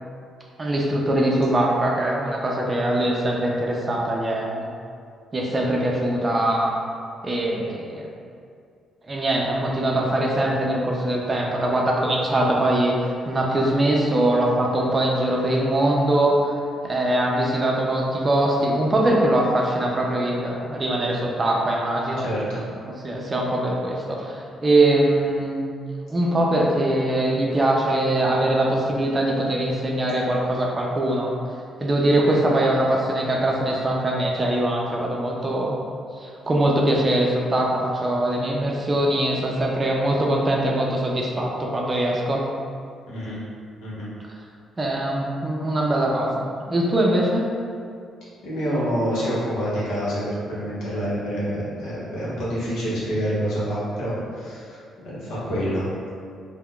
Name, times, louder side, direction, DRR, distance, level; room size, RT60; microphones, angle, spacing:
voice 1, 0.6-4.7 5.3-6.7 7.2-8.1 9.1-16.4 16.8-22.3 22.8-25.6 26.1-31.3 31.8-35.8 36.2-42.4 44.8-47.5, right 1 dB, 30° right, -2 dB, 0.4 m, -22 dB
voice 2, 22.2-22.6 43.1-43.4 43.8-44.1 48.4-55.9, equal, 85° left, -8 dB, 0.9 m, -27 dB
3.6 x 2.1 x 2.2 m, 2.3 s
cardioid pair, 90°, 0 cm